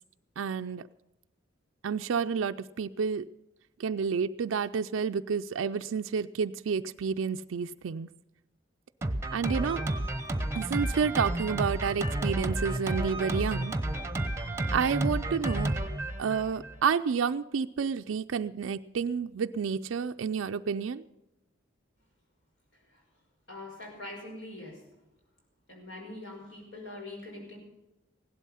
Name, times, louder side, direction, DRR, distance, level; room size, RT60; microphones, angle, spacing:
voice 1, 0.4-0.9 1.8-3.3 3.8-8.1 9.3-9.8 10.5-13.7 14.4-15.7 16.2-21.0, right 6 dB, 90° right, 7 dB, 0.4 m, -30 dB
Drum kit, 9.0-16.8, right 1 dB, 15° right, 1.0 m, -31 dB
voice 2, 23.5-24.8 25.7-27.6, left 2 dB, 70° left, 0 dB, 5.6 m, -43 dB
16.5 x 12.0 x 5.6 m, 0.97 s
head